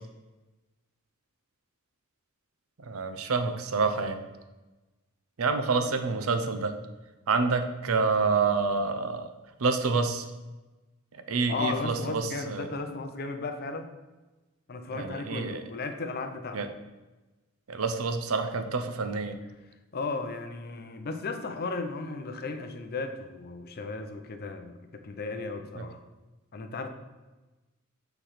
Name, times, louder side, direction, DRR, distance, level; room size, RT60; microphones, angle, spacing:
voice 1, 2.8-4.2 5.4-6.7 7.3-9.3 9.6-10.3 11.3-12.7 14.9-15.6 16.5-16.7 17.7-19.4 25.8-25.9, right 4 dB, 80° right, 8 dB, 0.6 m, -27 dB
voice 2, 11.5-13.9 14.7-16.6 19.9-26.0 26.5-26.9, left 3 dB, 45° left, 7 dB, 0.6 m, -35 dB
6.7 x 3.4 x 5.7 m, 1.1 s
head